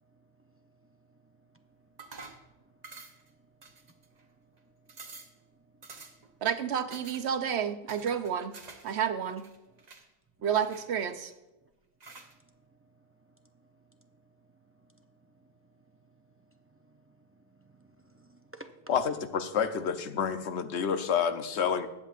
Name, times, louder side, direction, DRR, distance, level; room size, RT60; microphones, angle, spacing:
voice 1, 0.0-6.4 9.7-9.9 12.1-18.9, right 2 dB, 25° right, 6 dB, 0.3 m, -60 dB
sound 1, 2.0-2.5 2.8-3.3 3.6-4.2 4.6-4.7 4.9-5.4 5.8-6.3 6.9-7.2 7.9-8.9 9.2-10.0 10.6-11.3 12.0-12.3, right 4 dB, 45° right, 1.0 m, -49 dB
voice 2, 6.4-8.6 8.8-9.5 10.4-11.3, right 8 dB, 80° right, 9 dB, 1.0 m, -30 dB
voice 3, 18.9-21.9, left 7 dB, 90° left, 9 dB, 1.0 m, -29 dB
20.5 x 7.5 x 2.5 m, 1.0 s
omnidirectional pair, 1.1 m